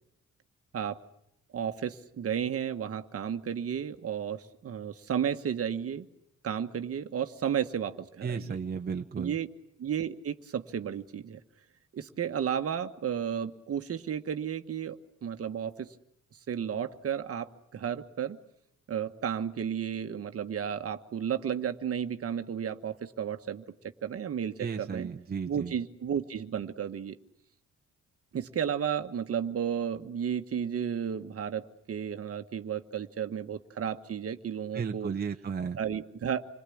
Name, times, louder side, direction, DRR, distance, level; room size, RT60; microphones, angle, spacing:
voice 1, 1.5-6.1 6.4-8.6 9.2-9.5 9.8-11.4 11.9-15.9 16.5-18.4 18.9-23.6 24.0-25.1 25.5-27.2 28.3-35.1 35.8-36.5, right 8 dB, 50° right, 8 dB, 1.4 m, -33 dB
voice 2, 8.2-9.3 24.6-25.7 34.7-35.8, right 6 dB, 30° right, 4 dB, 1.1 m, -34 dB
27.5 x 20.0 x 8.6 m, 0.79 s
cardioid pair, 90°, 30 cm